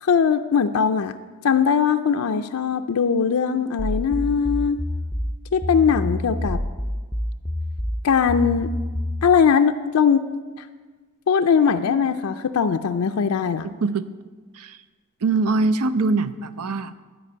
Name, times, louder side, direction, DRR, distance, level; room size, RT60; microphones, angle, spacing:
voice 1, 0.0-1.1 1.4-4.8 5.5-6.6 8.0-8.7 9.2-10.3 11.3-13.7, left 6 dB, 75° left, 7 dB, 0.4 m, -20 dB
sound 1, 3.8-9.3, left 1 dB, ahead, 0.5 m, -27 dB
voice 2, 13.6-14.1 14.5-14.8 15.2-16.9, right 3 dB, 85° right, 13 dB, 0.6 m, -23 dB
11.5 x 5.2 x 8.6 m, 1.4 s
head